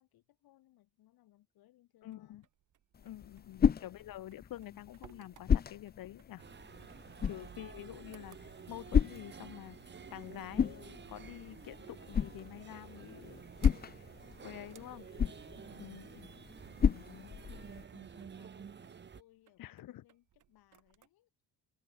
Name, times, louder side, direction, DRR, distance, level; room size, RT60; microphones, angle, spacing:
voice 1, 0.0-2.5 3.0-3.6 6.7-7.3 15.4-16.1 17.2-21.3, left 15 dB, 90° left, 4.9 m, -66 dB
voice 2, 2.0-2.4 3.0-6.4 7.3-13.4 14.0-14.1 14.4-15.0 15.8-16.3 16.8-17.3 19.6-20.0, left 14 dB, 70° left, 1.6 m, -48 dB
sound 1, 2.0-21.1, right 11 dB, 55° right, 2.8 m, -66 dB
sound 2, 2.9-17.8, left 7 dB, 25° left, 0.6 m, -35 dB
sound 3, 6.4-19.2, right 6 dB, 30° right, 1.4 m, -51 dB
open air
cardioid pair, 140°, 36 cm